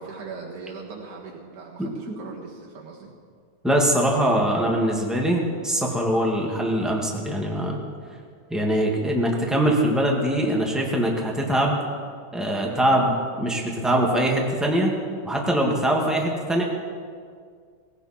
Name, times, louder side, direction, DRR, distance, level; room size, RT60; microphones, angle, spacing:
voice 1, 0.0-3.1, right 4 dB, 75° right, -3 dB, 3.0 m, -39 dB
voice 2, 1.8-2.2 3.6-7.8 8.5-11.8 12.3-15.0 15.2-16.6, right 1 dB, ahead, -1 dB, 1.4 m, -22 dB
18.0 x 17.5 x 4.4 m, 2.1 s
omnidirectional pair, 3.5 m